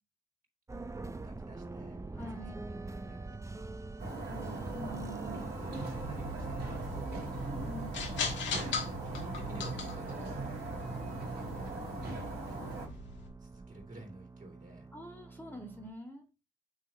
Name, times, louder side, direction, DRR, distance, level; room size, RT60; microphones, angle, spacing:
sound 1, 0.7-15.9, right 3 dB, 15° right, 0.6 m, -46 dB
voice 1, 1.2-3.7 5.2-7.3 9.0-10.7 11.5-13.0 13.4-14.9, right 1 dB, 40° right, 1 dB, 3.3 m, -52 dB
voice 2, 2.2-2.6 4.3-5.5 7.4-8.0 14.9-16.2, equal, 10° left, 2 dB, 1.9 m, -45 dB
sound 2, 4.0-12.9, right 2 dB, 60° right, 2.9 m, -40 dB
sound 3, 5.9-13.3, left 4 dB, 70° left, 1.4 m, -40 dB
9.4 x 3.7 x 2.9 m, 0.30 s
hypercardioid pair, 50°, 20 cm